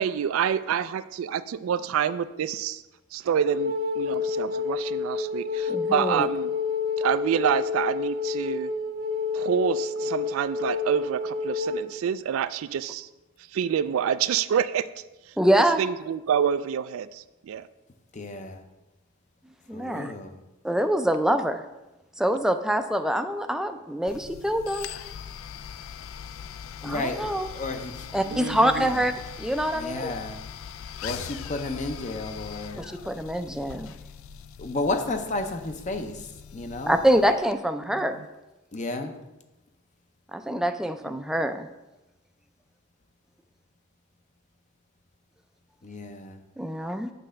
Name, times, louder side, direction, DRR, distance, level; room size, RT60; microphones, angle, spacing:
voice 1, 0.0-2.8 3.1-6.5 7.0-8.7 9.3-13.1 13.5-14.9 15.8-17.7 28.3-28.9 37.9-38.1, right 8 dB, 85° right, 14 dB, 0.3 m, -27 dB
Wind instrument woodwind instrument, 3.4-11.9, left 5 dB, 50° right, 0.8 m, -29 dB
voice 2, 5.7-6.3 15.4-15.8 19.7-20.1 20.6-21.6 22.2-24.9 26.8-27.5 28.1-29.1 29.4-30.1 32.7-33.9 36.9-38.2 40.3-41.7 46.6-47.1, right 1 dB, 5° right, 8 dB, 0.3 m, -25 dB
voice 3, 18.1-18.6 19.7-20.4 26.8-28.1 28.8-29.1 29.7-30.4 31.0-32.8 34.6-36.2 36.5-37.0 38.7-39.1 45.8-46.4, left 2 dB, 35° left, 6 dB, 0.6 m, -32 dB
sound 1, 24.1-37.6, left 8 dB, 75° left, 0.3 m, -41 dB
7.7 x 3.3 x 6.3 m, 1.0 s
head